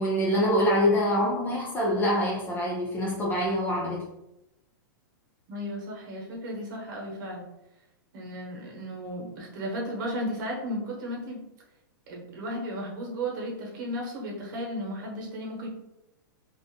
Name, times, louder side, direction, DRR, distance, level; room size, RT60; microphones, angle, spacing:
voice 1, 0.0-4.1, equal, 15° left, -3 dB, 0.4 m, -25 dB
voice 2, 5.5-7.4 8.1-11.4 12.1-15.7, equal, 60° right, -2 dB, 1.1 m, -34 dB
2.5 x 2.0 x 2.8 m, 0.89 s
hypercardioid pair, 130°, 12 cm